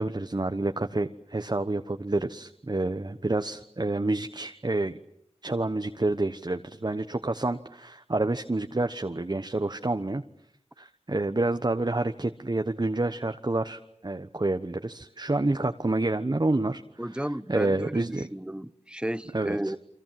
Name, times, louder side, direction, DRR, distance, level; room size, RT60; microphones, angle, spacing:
voice 1, 0.0-5.0 5.4-10.2 10.8-16.8 17.1-18.3 19.3-19.7, right 2 dB, 35° right, 1.1 m, -28 dB
voice 2, 17.0-19.8, right 1 dB, 10° right, 1.0 m, -33 dB
30.0 x 24.0 x 7.6 m
wide cardioid pair, 55°, 12 cm